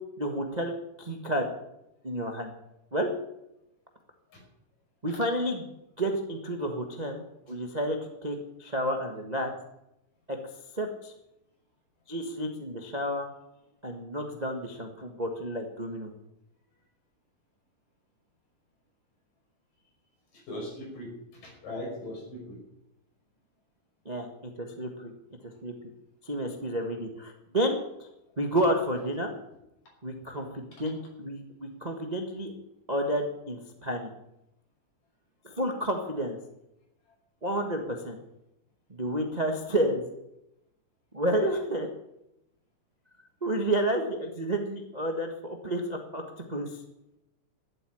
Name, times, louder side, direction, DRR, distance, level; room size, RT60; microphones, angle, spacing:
voice 1, 0.2-1.5 2.0-2.5 2.9-3.1 5.0-5.7 6.0-9.5 10.3-10.4 10.7-11.1 12.1-13.3 13.8-16.1 24.0-25.1 25.6-25.7 26.2-28.1 28.4-29.3 30.0-32.5 32.9-34.1 35.4-36.4 37.4-38.2 38.9-40.0 41.1-41.9 43.4-46.2 46.5-46.8, right 1 dB, 75° right, 3 dB, 0.3 m, -30 dB
voice 2, 20.3-22.6, left 1 dB, 85° left, -1 dB, 7.3 m, -39 dB
13.0 x 8.2 x 9.9 m, 0.86 s
omnidirectional pair, 3.8 m